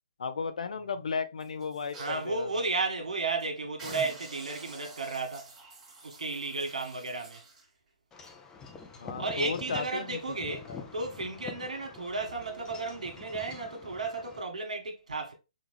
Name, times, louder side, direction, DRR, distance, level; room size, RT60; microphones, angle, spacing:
voice 1, 0.2-2.5 9.0-10.9, left 5 dB, 75° left, 0.7 m, -35 dB
sound 1, 1.4-2.3 2.7-2.8 3.2-3.4 3.8-7.7 8.2-8.3, right 3 dB, 20° right, 1.8 m, -48 dB
voice 2, 2.0-5.5 6.0-7.4 9.2-15.3, right 3 dB, 80° right, 1.5 m, -33 dB
Wind chime / Wind, 8.1-14.4, left 5 dB, 15° left, 0.6 m, -46 dB
5.1 x 2.4 x 3.2 m
hypercardioid pair, 140°, 4 cm